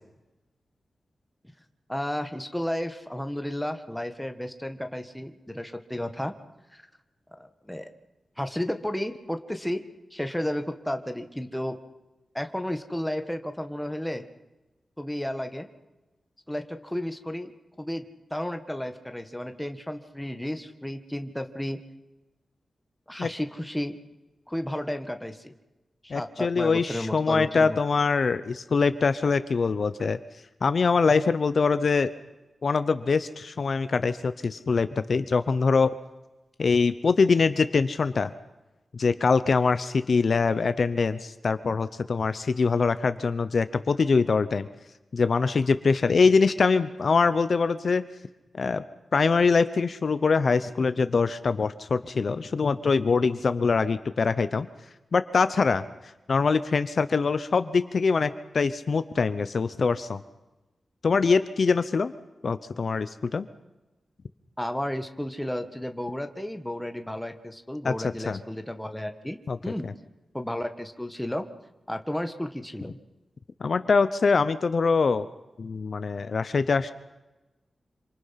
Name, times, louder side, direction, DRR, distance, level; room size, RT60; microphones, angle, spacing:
voice 1, 1.9-6.3 6.7-6.8 7.4-7.8 8.4-9.8 10.1-11.8 12.3-14.3 15.0-15.7 16.5-17.5 17.8-18.0 18.3-21.8 23.1-24.0 24.5-25.5 26.0-27.8 64.6-69.4 69.6-69.9 70.3-71.5 71.9-73.0, left 1 dB, 5° left, 7 dB, 1.6 m, -32 dB
voice 2, 26.1-30.2 30.6-32.1 32.6-35.9 36.6-38.3 38.9-44.7 45.1-48.1 48.5-48.8 49.1-54.7 55.1-55.8 56.3-60.2 61.0-62.1 62.4-63.5 67.8-67.9 68.3-68.4 69.5-69.6 73.6-75.3 75.6-76.9, left 4 dB, 50° left, 12 dB, 0.8 m, -23 dB
27.0 x 25.5 x 5.9 m, 1.1 s
wide cardioid pair, 150°, 0 cm